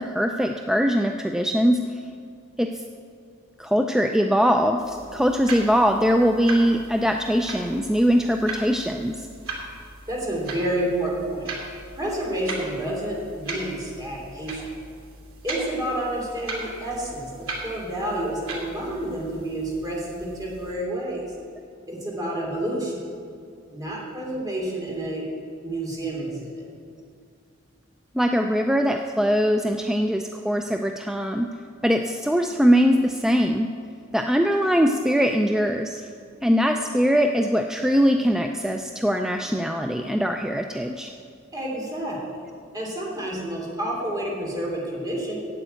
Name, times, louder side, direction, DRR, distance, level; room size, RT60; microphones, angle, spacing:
voice 1, 0.0-2.0 2.6-2.8 3.6-9.3 28.1-31.5 31.8-33.7 34.1-36.0 36.4-41.1, equal, 5° right, 4 dB, 0.4 m, -22 dB
sound 1, 4.8-20.7, right 2 dB, 80° right, 2.6 m, -39 dB
voice 2, 10.1-11.5 11.9-14.7 15.4-21.2 21.9-23.0 23.7-25.2 25.6-26.6 41.5-42.2 42.7-45.4, right 1 dB, 20° right, -3 dB, 3.1 m, -29 dB
8.6 x 8.0 x 9.1 m, 2.3 s
head